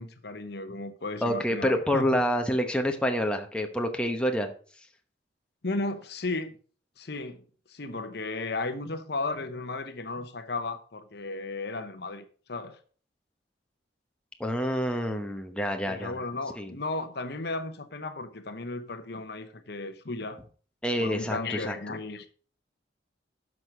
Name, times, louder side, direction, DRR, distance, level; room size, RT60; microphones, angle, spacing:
voice 1, 0.0-2.2 5.6-6.5 7.0-12.8 15.9-20.4 21.0-22.3, left 3 dB, 60° left, 0.9 m, -35 dB
voice 2, 1.2-4.5 14.4-16.2 16.6-16.7 20.8-21.8, equal, 5° left, 1.0 m, -27 dB
10.5 x 6.3 x 5.0 m
head